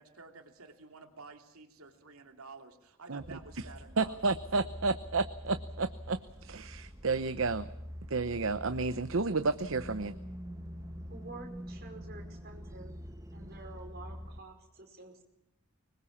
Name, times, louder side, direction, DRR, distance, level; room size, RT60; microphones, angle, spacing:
voice 1, 0.0-4.2, right 4 dB, 90° right, 5 dB, 2.8 m, -51 dB
sound 1, 3.2-14.4, equal, 15° right, 1.6 m, -45 dB
voice 2, 4.0-7.7 8.1-10.2, right 3 dB, 65° right, 11 dB, 0.9 m, -31 dB
voice 3, 11.1-13.0 13.3-15.2, right 2 dB, 45° right, 3 dB, 5.0 m, -49 dB
25.0 x 21.0 x 7.3 m, 0.81 s
head